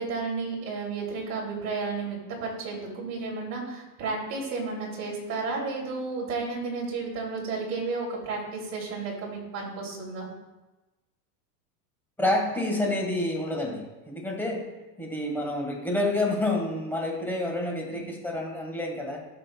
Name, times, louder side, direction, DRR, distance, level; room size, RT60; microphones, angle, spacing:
voice 1, 0.0-10.3 17.9-18.0, right 4 dB, 35° right, -2 dB, 2.9 m, -32 dB
voice 2, 12.2-14.7 15.0-19.3, left 1 dB, 5° left, 0 dB, 1.5 m, -28 dB
15.0 x 6.2 x 2.3 m, 1.1 s
supercardioid pair, 150°, 46 cm